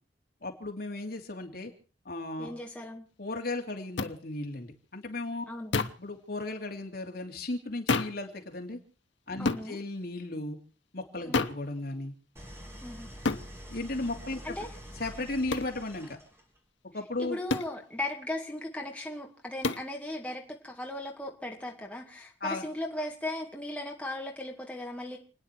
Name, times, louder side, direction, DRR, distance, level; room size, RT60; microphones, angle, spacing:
voice 1, 0.4-1.7 2.0-2.5 3.2-5.4 6.0-8.8 9.3-10.6 10.9-12.1 13.7-14.6 14.9-16.2 16.9-17.4 22.4-22.6, left 2 dB, 55° left, 2 dB, 2.8 m, -35 dB
voice 2, 2.4-3.1 5.5-5.9 9.4-9.8 11.2-11.5 12.8-13.1 14.4-14.7 17.2-25.2, left 1 dB, 5° left, 0 dB, 2.1 m, -37 dB
sound 1, 4.0-4.1 5.7-6.1 7.9-8.2 9.5-9.7 11.3-11.6 13.3-13.5 15.5-15.7 17.5-17.8 19.6-19.9, left 3 dB, 90° left, 1.0 m, -29 dB
Idling, 12.4-16.6, equal, 15° right, 3.3 m, -46 dB
30.0 x 10.0 x 4.5 m, 0.39 s
head